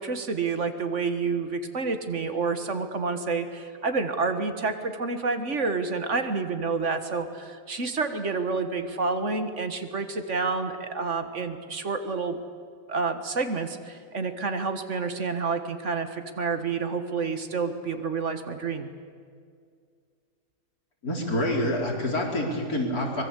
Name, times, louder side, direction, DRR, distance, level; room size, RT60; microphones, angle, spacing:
voice 1, 0.0-12.4 12.9-18.9, right 4 dB, 55° right, 8 dB, 1.8 m, -29 dB
voice 2, 21.0-23.2, left 1 dB, 85° left, 0 dB, 4.4 m, -27 dB
24.0 x 21.0 x 8.2 m, 2.1 s
omnidirectional pair, 1.5 m